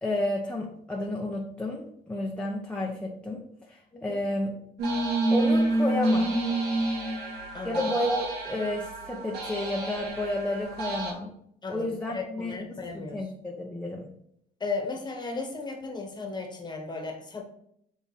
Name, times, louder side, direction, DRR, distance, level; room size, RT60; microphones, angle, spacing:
voice 1, 0.0-3.4 3.7-4.5 5.3-6.4 7.6-11.3 11.7-12.6 12.9-14.1, left 1 dB, 5° left, -3 dB, 1.0 m, -31 dB
sound 1, 4.8-11.1, right 1 dB, 75° right, 2.3 m, -28 dB
voice 2, 7.5-7.8 11.6-13.2 14.6-17.4, left 4 dB, 25° left, 3 dB, 1.4 m, -35 dB
8.1 x 3.7 x 3.4 m, 0.71 s
cardioid pair, 110°, 17 cm